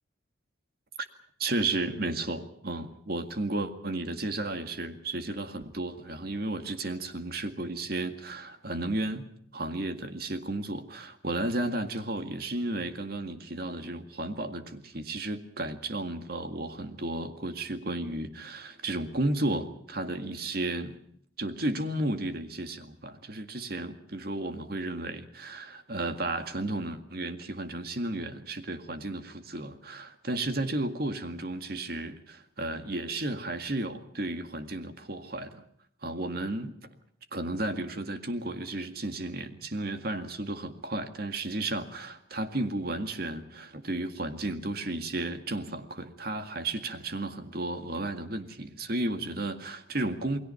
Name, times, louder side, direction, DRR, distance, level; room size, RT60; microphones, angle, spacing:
voice 1, 1.4-9.3 9.5-21.0 21.4-35.6 36.0-36.7 37.3-50.4, right 2 dB, 50° right, 8 dB, 2.0 m, -33 dB
29.0 x 21.0 x 5.7 m, 0.65 s
head